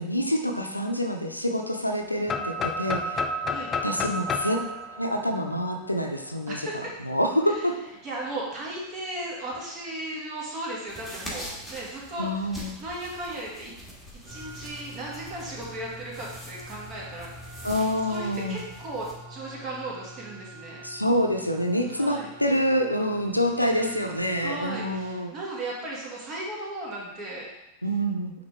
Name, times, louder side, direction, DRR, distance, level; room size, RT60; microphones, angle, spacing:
voice 1, 0.0-3.2 3.8-4.6 4.9-6.6 7.1-7.7 12.2-12.8 17.6-18.6 20.8-25.3 27.8-28.3, equal, 85° left, 4 dB, 0.7 m, -26 dB
sound 1, 2.3-6.1, left 2 dB, 25° left, 0.4 m, -30 dB
voice 2, 6.5-6.9 7.5-7.6 8.0-13.7 14.2-17.7 18.1-20.8 21.9-22.3 23.6-27.5, right 1 dB, 30° right, -3 dB, 2.0 m, -36 dB
sound 2, 10.9-19.1, equal, ahead, 1.8 m, -43 dB
sound 3, 14.2-25.1, right 1 dB, 80° right, 2.2 m, -46 dB
8.9 x 3.6 x 3.5 m, 0.91 s
figure-of-eight pair, 90°, 0 cm